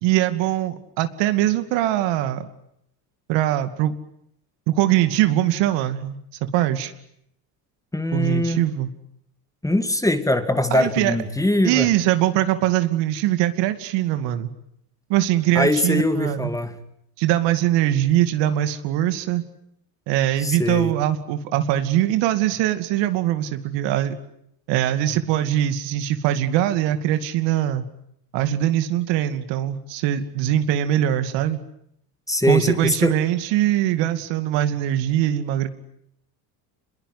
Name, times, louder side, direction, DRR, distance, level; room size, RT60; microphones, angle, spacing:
voice 1, 0.0-2.5 3.3-3.9 4.7-6.2 6.5-6.9 8.1-8.9 10.7-11.2 11.6-14.5 15.1-16.5 17.2-19.4 20.1-24.2 24.7-27.8 28.3-31.6 32.5-35.7, right 13 dB, 75° right, 9 dB, 2.6 m, -22 dB
voice 2, 7.9-8.6 9.6-11.9 15.5-16.8 20.4-21.0 32.3-33.2, left 1 dB, 5° left, 9 dB, 2.4 m, -22 dB
26.5 x 21.5 x 9.6 m, 0.74 s
supercardioid pair, 100°, 43 cm